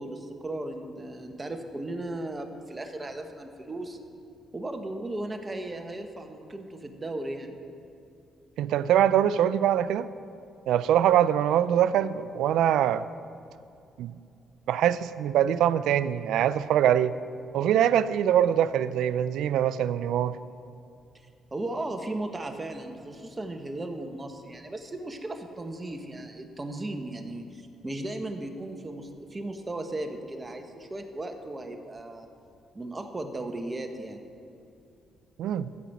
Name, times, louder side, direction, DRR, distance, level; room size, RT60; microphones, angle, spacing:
voice 1, 0.0-4.0 4.5-7.6 21.5-32.3 32.7-34.2, right 2 dB, 20° right, 5 dB, 1.2 m, -36 dB
voice 2, 8.6-10.1 10.7-13.0 14.0-14.1 14.7-17.2 17.5-20.4 35.4-35.7, right 10 dB, 85° right, 15 dB, 0.4 m, -23 dB
15.0 x 5.2 x 7.3 m, 2.6 s
cardioid pair, 90°, 0 cm